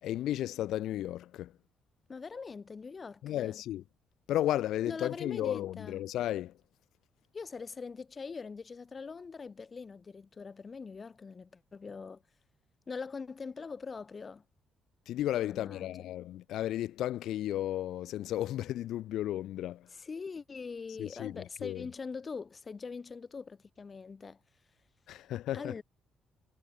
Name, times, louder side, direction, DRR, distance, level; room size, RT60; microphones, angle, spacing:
voice 1, 0.0-1.5 3.2-3.8 4.3-6.5 15.1-19.9 21.0-21.8 25.1-25.7, left 13 dB, 80° left, 5.2 m, -34 dB
voice 2, 2.1-3.6 4.9-6.0 7.3-12.2 12.9-14.4 15.4-16.1 19.9-24.4 25.5-25.8, left 5 dB, 35° left, 5.4 m, -42 dB
cardioid pair, 90°, 0 cm